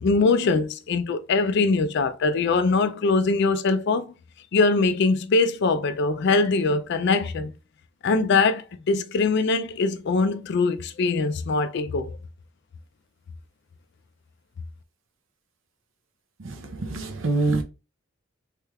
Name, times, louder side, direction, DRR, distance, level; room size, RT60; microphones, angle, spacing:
voice 1, 0.0-4.1 4.5-7.5 8.0-12.1, left 3 dB, 60° left, 0.4 m, -22 dB
voice 2, 16.4-17.6, right 3 dB, 70° right, 0.6 m, -26 dB
3.3 x 3.2 x 2.3 m
head